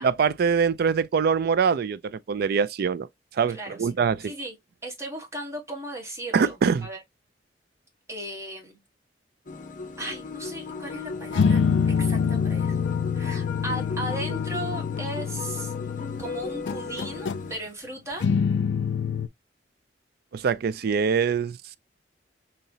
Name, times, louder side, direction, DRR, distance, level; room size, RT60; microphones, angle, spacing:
voice 1, 0.0-3.1 3.4-4.3 6.3-6.9 20.3-21.6, right 6 dB, 60° right, 0.3 m, -23 dB
voice 2, 3.5-3.9 4.2-4.6 4.8-6.6 6.8-7.0 8.1-8.8 10.0-11.6 12.0-15.7 16.2-18.3, right 1 dB, 15° right, 1.4 m, -36 dB
sound 1, 9.5-17.6, left 4 dB, 50° left, 0.6 m, -36 dB
sound 2, 11.3-16.3 16.7-17.5 18.2-19.3, left 6 dB, 90° left, 0.4 m, -26 dB
4.1 x 2.8 x 2.6 m
head